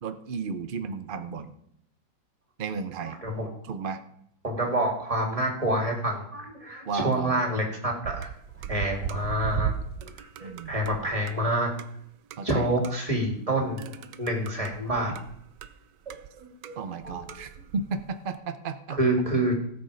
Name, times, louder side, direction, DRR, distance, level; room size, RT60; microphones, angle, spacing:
voice 1, 0.0-1.5 2.6-3.2 3.7-4.0 6.9-7.4 10.4-10.8 12.4-12.7 16.8-19.0, right 5 dB, 90° right, 9 dB, 0.4 m, -33 dB
voice 2, 3.0-3.5 4.4-8.3 8.7-9.7 10.0-11.7 12.4-15.1 16.1-16.8 17.0-17.2 18.9-19.6, right 1 dB, 20° right, 0 dB, 2.6 m, -28 dB
sound 1, 8.0-11.4 11.8-11.9 12.3-12.4 12.8-13.1 13.8-15.7 16.0-16.8 17.0-18.4, right 10 dB, 70° right, 1.3 m, -37 dB
17.0 x 7.1 x 5.0 m, 0.73 s
omnidirectional pair, 2.0 m